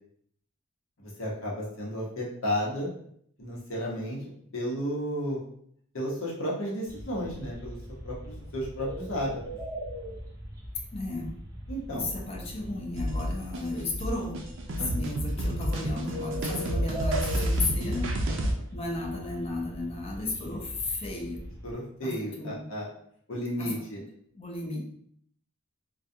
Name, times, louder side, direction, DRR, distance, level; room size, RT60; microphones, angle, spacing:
voice 1, 1.0-2.9 3.4-4.2 4.5-5.4 5.9-7.8 8.0-9.4 11.7-12.1 14.8-14.9 18.3-18.6 21.6-22.9 23.3-24.0, equal, 85° left, -4 dB, 0.9 m, -33 dB
sound 1, 6.9-21.7, equal, 15° right, 0.6 m, -40 dB
voice 2, 10.9-11.3 11.9-14.4 14.9-18.1 18.7-21.4 22.0-22.6 23.6-23.7 24.3-24.8, left 2 dB, 30° left, 0 dB, 0.5 m, -34 dB
sound 2, 13.0-18.5, right 1 dB, 65° right, 0.4 m, -29 dB
2.3 x 2.2 x 2.6 m, 0.65 s
head